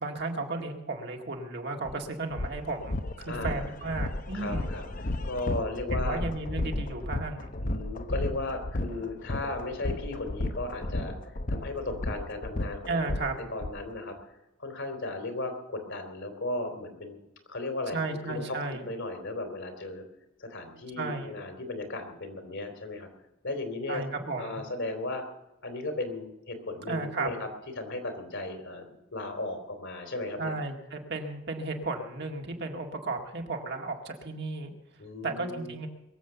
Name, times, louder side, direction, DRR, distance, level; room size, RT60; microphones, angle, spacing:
voice 1, 0.0-4.7 5.9-7.5 12.9-13.4 17.9-18.9 21.0-21.3 23.9-24.6 26.9-27.3 30.4-34.7 35.2-35.9, right 3 dB, 55° right, 3 dB, 2.0 m, -34 dB
sound 1, 1.8-1.9 2.3-13.7, left 1 dB, 40° left, 0.9 m, -33 dB
voice 2, 3.3-3.7 4.3-6.2 7.6-14.3 14.6-17.2 17.5-18.0 18.3-20.0 20.4-23.1 23.4-24.0 24.4-25.2 25.6-27.4 27.8-30.5 35.0-35.7, left 2 dB, 60° left, 6 dB, 3.1 m, -36 dB
22.5 x 7.8 x 6.9 m, 0.92 s
head